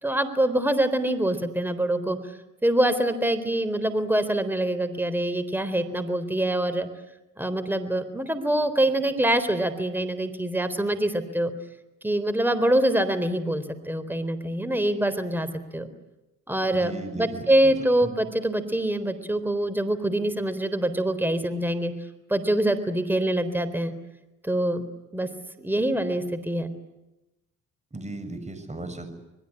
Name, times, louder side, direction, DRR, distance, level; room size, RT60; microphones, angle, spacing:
voice 1, 0.0-2.2 2.6-6.9 7.4-11.5 12.0-15.9 16.5-21.9 22.3-23.9 24.4-24.8 25.1-25.3 25.6-26.7, right 1 dB, 5° right, 12 dB, 3.8 m, -25 dB
voice 2, 16.7-17.7 18.0-18.1 27.9-29.1, right 2 dB, 25° right, 9 dB, 7.0 m, -36 dB
26.5 x 21.5 x 9.8 m, 0.95 s
cardioid pair, 90°, 30 cm